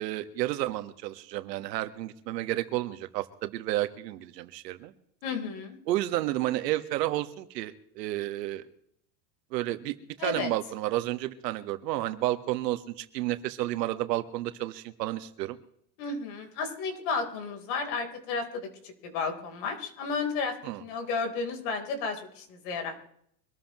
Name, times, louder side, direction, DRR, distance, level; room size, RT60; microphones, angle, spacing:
voice 1, 0.0-4.9 5.9-8.6 9.5-15.6 20.6-20.8, right 15 dB, 80° right, 9 dB, 1.6 m, -31 dB
voice 2, 5.2-5.8 10.2-10.5 16.0-18.7 19.0-23.0, left 4 dB, 55° left, 4 dB, 4.0 m, -32 dB
24.5 x 13.5 x 3.1 m, 0.68 s
supercardioid pair, 140°, 49 cm